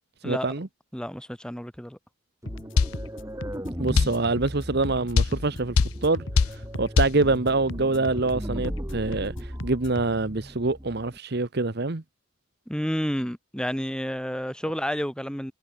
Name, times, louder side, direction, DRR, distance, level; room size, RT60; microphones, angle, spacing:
voice 1, 0.2-0.7 3.8-5.8 6.0-6.2 6.5-12.0, right 3 dB, 50° right, 1.1 m, -25 dB
voice 2, 0.9-2.0 12.7-15.5, equal, 5° left, 6.6 m, -30 dB
sound 1, 2.4-11.2, equal, 15° right, 2.3 m, -38 dB
sound 2, 2.5-10.1, left 1 dB, 60° left, 2.4 m, -38 dB
sound 3, 2.8-3.0 4.0-4.2 5.2-5.4 5.8-6.0 6.4-6.6 7.0-7.2, left 4 dB, 80° left, 0.6 m, -19 dB
head